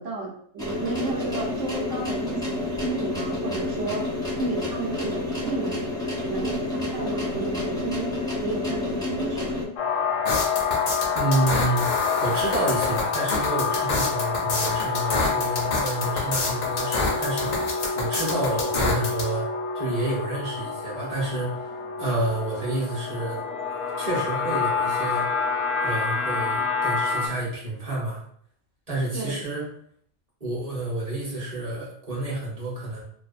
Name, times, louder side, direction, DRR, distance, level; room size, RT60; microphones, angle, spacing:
voice 1, 0.0-4.0 4.4-5.9 6.2-8.1 8.4-9.6 29.1-29.3, right 3 dB, 70° right, -1 dB, 0.9 m, -32 dB
sound 1, 0.6-9.6, left 2 dB, 5° left, 0.5 m, -29 dB
sound 2, 9.8-27.3, left 5 dB, 80° left, 1.0 m, -27 dB
sound 3, 10.2-19.2, left 2 dB, 55° left, 0.5 m, -27 dB
voice 2, 11.1-17.6 17.9-19.5 19.7-21.7 22.0-23.4 24.0-25.3 25.8-28.2 28.9-29.7 30.4-33.0, right 2 dB, 35° right, -5 dB, 0.8 m, -29 dB
2.6 x 2.3 x 2.4 m, 0.63 s
omnidirectional pair, 1.3 m